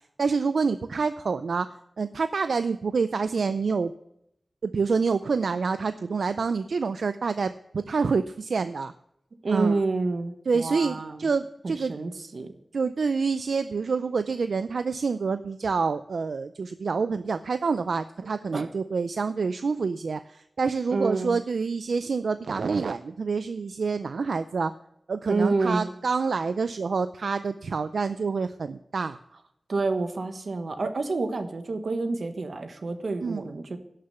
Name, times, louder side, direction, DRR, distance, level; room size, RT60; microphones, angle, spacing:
voice 1, 0.2-1.7 2.0-3.9 4.6-8.9 9.5-9.8 10.5-11.9 12.7-24.7 25.1-29.2 33.2-33.5, right 4 dB, 90° right, 11 dB, 0.4 m, -27 dB
voice 2, 9.4-11.3 11.6-12.5 18.5-18.7 20.9-21.4 25.3-25.9 29.7-33.8, right 3 dB, 70° right, 7 dB, 1.3 m, -28 dB
11.5 x 6.7 x 7.9 m, 0.77 s
wide cardioid pair, 95°, 0 cm